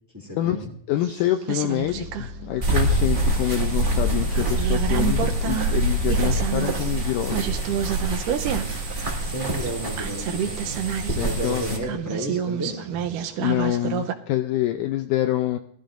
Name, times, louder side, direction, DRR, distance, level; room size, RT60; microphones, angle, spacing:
voice 1, 0.1-0.7 9.2-10.8 11.1-13.0, equal, 5° right, 0 dB, 2.0 m, -32 dB
voice 2, 0.9-7.8 11.2-11.7 13.4-15.6, left 13 dB, 80° left, 7 dB, 2.0 m, -26 dB
sound 1, 1.0-2.3 2.6-3.8 4.2-14.1, right 8 dB, 75° right, 2.3 m, -30 dB
sound 2, 1.8-7.5, left 2 dB, 55° left, 3.1 m, -38 dB
sound 3, 2.6-11.8, right 2 dB, 25° right, 1.2 m, -25 dB
20.5 x 13.0 x 2.5 m, 0.67 s
omnidirectional pair, 4.0 m